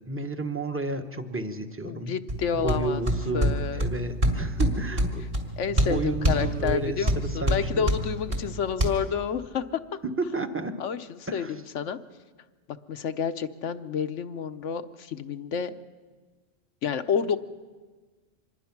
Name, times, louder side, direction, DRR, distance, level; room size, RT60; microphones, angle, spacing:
voice 1, 0.0-2.2 2.5-5.2 5.7-7.9 10.0-10.8 11.3-11.5, right 2 dB, 10° right, 7 dB, 1.0 m, -32 dB
voice 2, 1.8-3.0 3.3-4.0 5.6-9.8 10.8-12.0 12.7-15.7 16.8-17.4, left 7 dB, 75° left, 10 dB, 1.2 m, -29 dB
sound 1, 2.3-8.9, right 1 dB, 50° right, 2.9 m, -27 dB
25.5 x 21.0 x 6.0 m, 1.4 s
omnidirectional pair, 1.3 m